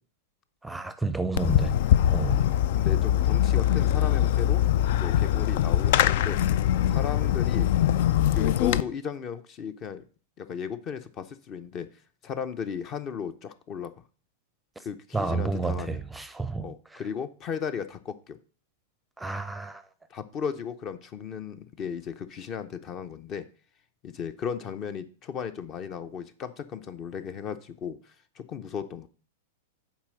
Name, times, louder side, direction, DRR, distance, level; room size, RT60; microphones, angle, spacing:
voice 1, 0.6-1.7 2.1-2.5 15.1-17.0 19.2-19.8, right 3 dB, 5° right, 0.6 m, -30 dB
Fireworks, 1.4-8.8, left 11 dB, 60° left, 0.4 m, -23 dB
voice 2, 2.3-4.6 5.0-6.4 6.9-7.7 8.3-10.0 10.4-11.9 12.2-13.9 14.8-16.0 16.6-18.4 20.1-23.5 24.0-29.1, left 7 dB, 35° left, 0.8 m, -35 dB
7.3 x 4.6 x 6.2 m
hypercardioid pair, 115°, 0 cm